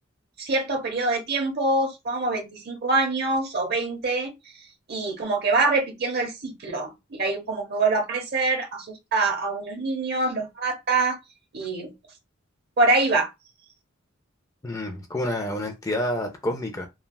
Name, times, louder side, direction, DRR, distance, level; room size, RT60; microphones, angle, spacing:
voice 1, 0.4-4.3 4.9-11.2 11.5-11.9 12.8-13.3, right 3 dB, 55° right, 0.9 m, -25 dB
voice 2, 14.6-16.9, left 1 dB, 15° left, 0.4 m, -28 dB
3.2 x 2.3 x 2.2 m
head